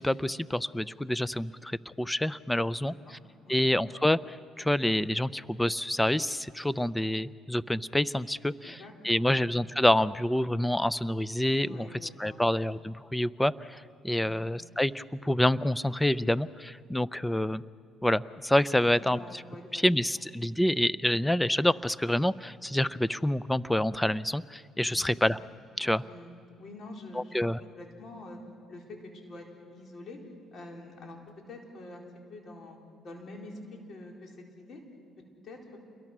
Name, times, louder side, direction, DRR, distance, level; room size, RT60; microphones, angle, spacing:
voice 1, 0.0-3.2 3.5-8.8 9.0-11.9 12.2-17.6 18.0-19.4 19.7-25.4 25.8-26.0 27.2-27.6, left 1 dB, 10° left, 18 dB, 0.5 m, -27 dB
voice 2, 2.8-3.2 3.4-3.6 8.6-9.4 11.6-12.4 14.2-14.5 18.8-20.2 24.8-25.2 26.0-26.3 26.6-27.5 27.7-28.4 28.7-30.2 30.5-31.2 31.5-32.0 32.3-32.8 33.0-34.8 35.4-35.8, left 2 dB, 55° left, 1 dB, 4.3 m, -46 dB
28.5 x 22.5 x 6.1 m, 2.2 s
cardioid pair, 80°, 0 cm